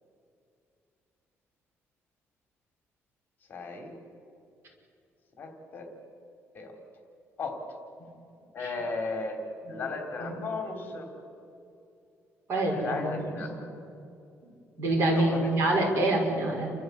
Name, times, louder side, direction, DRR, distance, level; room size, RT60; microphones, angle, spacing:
voice 1, 3.5-3.9 5.4-5.9 6.5-6.8 7.4-7.8 8.5-11.1 12.7-13.6 15.1-15.7, left 3 dB, 35° left, 4 dB, 3.3 m, -36 dB
voice 2, 12.5-13.2 14.8-16.7, right 2 dB, 50° right, 0 dB, 6.1 m, -26 dB
29.5 x 14.0 x 8.2 m, 2.6 s
cardioid pair, 165°, 5 cm